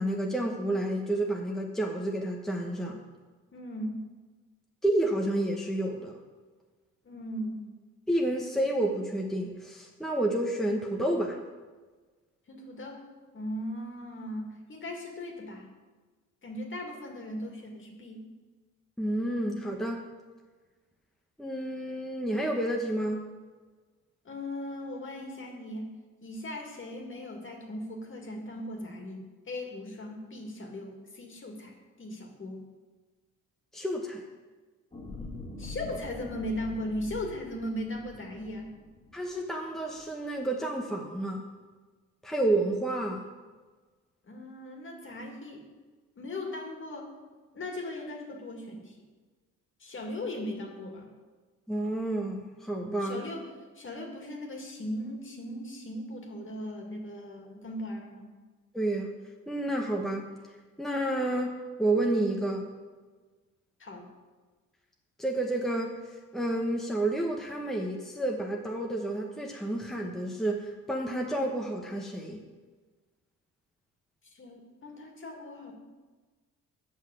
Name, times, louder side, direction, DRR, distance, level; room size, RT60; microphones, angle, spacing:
voice 1, 0.0-3.0 4.8-6.1 8.1-11.4 19.0-20.1 21.4-23.3 33.7-34.2 39.1-41.4 42.2-43.3 51.7-53.2 58.7-59.1 59.5-60.3 60.8-62.7 65.2-66.0 66.3-72.4, right 1 dB, ahead, 0 dB, 1.1 m, -30 dB
voice 2, 3.5-4.0 7.0-7.7 12.5-13.0 13.3-15.7 16.4-18.2 24.2-25.9 26.2-32.7 35.6-38.7 44.2-45.6 46.2-47.1 47.5-48.9 49.8-51.1 53.0-53.5 53.8-58.3 63.8-64.1 74.3-75.7, left 1 dB, 40° left, 1 dB, 2.1 m, -38 dB
sound 1, 34.9-39.4 39.9-40.0, left 3 dB, 20° left, 1.9 m, -44 dB
8.2 x 5.7 x 7.6 m, 1.3 s
cardioid pair, 90°, 30 cm